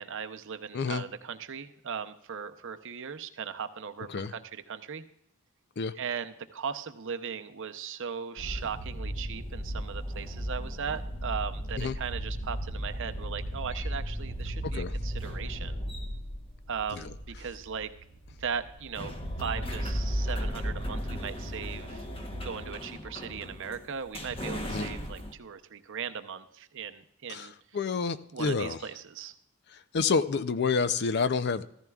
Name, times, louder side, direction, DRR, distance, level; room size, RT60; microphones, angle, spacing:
voice 1, 0.0-5.0 5.9-15.8 16.7-17.9 18.4-19.1 19.4-22.0 22.4-27.5 28.3-29.3, right 7 dB, 55° right, 9 dB, 0.7 m, -38 dB
sound 1, 8.4-25.3, equal, 25° left, 0.9 m, -36 dB
voice 2, 14.6-14.9 24.7-24.9 27.3-27.5 27.7-28.8 29.9-31.6, left 5 dB, 50° left, 13 dB, 0.5 m, -28 dB
15.0 x 14.0 x 2.3 m, 0.77 s
head